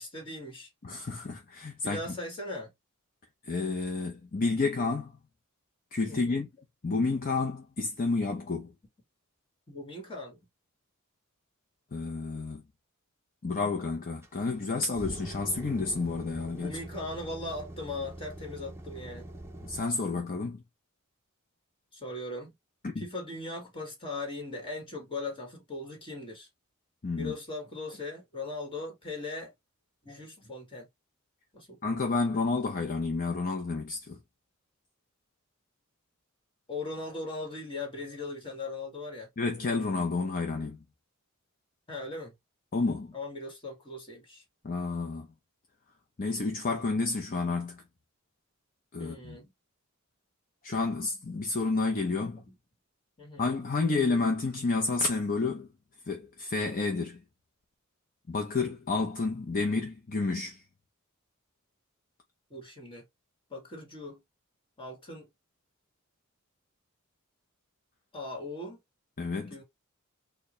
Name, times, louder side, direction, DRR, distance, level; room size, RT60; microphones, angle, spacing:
voice 1, 0.0-0.7 1.8-2.7 6.1-6.5 9.7-10.5 16.5-19.3 21.9-22.5 23.0-26.5 27.1-29.5 30.0-30.9 31.5-32.1 36.7-39.3 41.9-42.3 43.1-44.4 49.0-49.5 52.3-52.5 53.2-53.5 62.5-63.0 63.5-64.2 64.8-65.3 68.1-68.8 69.5-69.6, left 2 dB, 25° left, 1.7 m, -39 dB
voice 2, 0.8-2.2 3.4-5.1 5.9-6.5 6.8-8.7 11.9-12.6 13.4-16.8 19.6-20.6 22.8-23.0 27.0-27.3 31.8-34.2 39.4-40.8 42.7-43.1 44.6-45.3 46.2-47.8 48.9-49.4 50.6-52.4 53.4-55.7 56.1-57.2 58.3-60.6 69.2-69.6, left 3 dB, 40° left, 0.6 m, -30 dB
sound 1, 14.2-19.8, right 1 dB, 10° right, 0.7 m, -43 dB
4.5 x 2.2 x 3.0 m
head